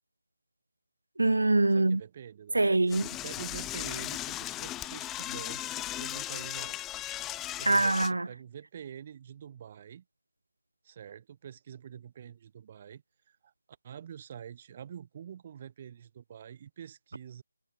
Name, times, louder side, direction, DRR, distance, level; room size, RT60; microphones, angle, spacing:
voice 1, 1.2-2.0 2.5-3.2 7.6-8.3, right 2 dB, 75° right, 0.3 m, -24 dB
voice 2, 1.7-2.7 3.2-6.8 7.6-10.0 10.8-13.5 13.8-17.4, right 9 dB, 30° right, 3.8 m, -46 dB
Door / Toilet flush, 2.9-8.1, left 14 dB, 10° left, 0.6 m, -37 dB
figure-of-eight pair, 155°, 0 cm